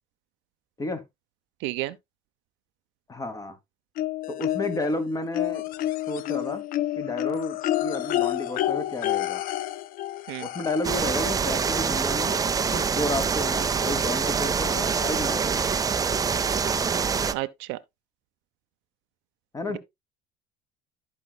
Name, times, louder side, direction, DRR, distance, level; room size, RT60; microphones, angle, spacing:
voice 1, 1.6-1.9 10.3-10.5 17.3-17.8, right 19 dB, 70° right, 0.6 m, -31 dB
voice 2, 3.1-3.6 4.3-5.6 6.1-6.6 7.0-9.4 10.4-12.4 12.7-15.7 19.5-19.8, left 2 dB, 15° left, 1.2 m, -31 dB
sound 1, 4.0-4.9 5.3-11.0 12.2-12.3 12.7-12.8, left 14 dB, 45° left, 0.4 m, -29 dB
sound 2, 10.8-17.3, right 6 dB, 20° right, 0.5 m, -25 dB
15.0 x 5.1 x 2.2 m
cardioid pair, 125°, 20 cm